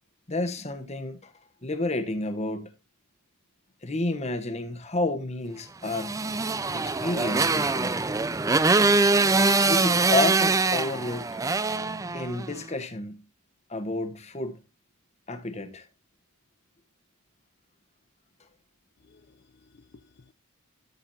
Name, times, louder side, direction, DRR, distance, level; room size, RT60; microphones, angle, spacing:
voice 1, 0.3-1.3 1.6-2.7 3.8-6.2 6.7-8.0 9.7-11.3 12.1-13.2 13.7-14.6 15.3-15.9, left 2 dB, 30° left, 1.1 m, -30 dB
Motorcycle, 5.9-12.6, right 3 dB, 15° right, 0.4 m, -23 dB
voice 2, 19.0-20.3, left 3 dB, 50° left, 0.5 m, -57 dB
13.5 x 7.1 x 2.7 m
head